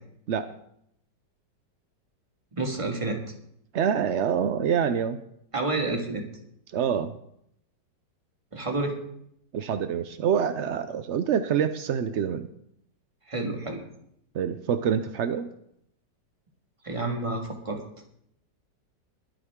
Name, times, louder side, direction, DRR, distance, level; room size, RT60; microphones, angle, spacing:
voice 1, 2.5-3.2 5.5-6.2 8.5-9.0 13.3-13.8 16.8-17.8, right 2 dB, 20° right, 2 dB, 1.8 m, -29 dB
voice 2, 3.7-5.2 6.7-7.1 9.5-12.5 14.3-15.5, right 8 dB, 75° right, 10 dB, 0.6 m, -26 dB
21.5 x 9.0 x 3.7 m, 0.74 s
omnidirectional pair, 1.9 m